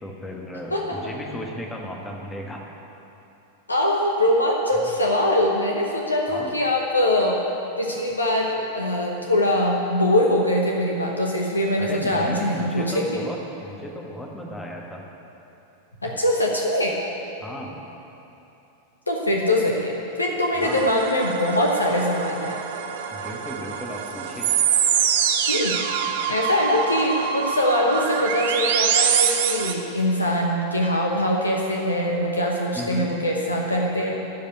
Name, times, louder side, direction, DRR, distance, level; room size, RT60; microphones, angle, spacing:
voice 1, 0.0-2.6 4.8-4.9 6.3-6.5 11.8-15.0 17.4-17.8 20.5-20.9 23.1-24.5 32.7-33.1, equal, 10° left, 0 dB, 1.6 m, -35 dB
voice 2, 3.7-7.4 7.8-13.2 16.0-17.0 19.1-22.6 25.5-25.8 26.3-34.2, left 1 dB, 80° left, -1 dB, 1.1 m, -22 dB
sound 1, 20.6-29.7, right 8 dB, 55° right, 0.8 m, -25 dB
13.0 x 5.2 x 9.2 m, 2.9 s
figure-of-eight pair, 90°, 0 cm